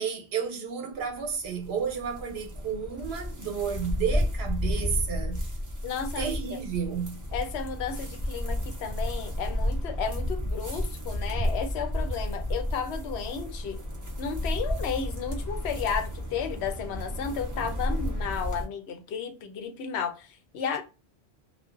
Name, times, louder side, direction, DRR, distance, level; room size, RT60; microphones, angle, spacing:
voice 1, 0.0-5.4 6.2-7.2, right 7 dB, 70° right, 0.9 m, -31 dB
sound 1, 0.9-18.7, left 1 dB, 20° right, 0.6 m, -32 dB
voice 2, 5.8-6.6 7.3-13.8 14.2-20.8, left 6 dB, 75° left, 0.8 m, -33 dB
2.4 x 2.2 x 2.4 m
omnidirectional pair, 1.1 m